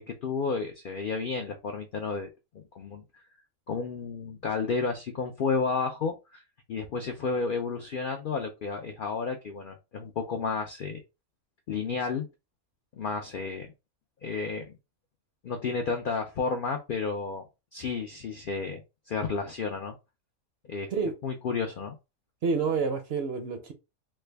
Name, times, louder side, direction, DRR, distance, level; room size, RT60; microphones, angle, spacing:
voice 1, 0.0-2.3 2.5-3.2 3.7-6.4 6.7-11.0 11.7-12.3 13.0-13.7 14.2-14.7 15.4-17.4 17.7-20.0 20.7-20.9 21.2-21.9, left 4 dB, 70° left, 0.5 m, -32 dB
voice 2, 22.4-23.7, right 5 dB, 60° right, 0.7 m, -28 dB
3.2 x 2.2 x 3.3 m
omnidirectional pair, 1.4 m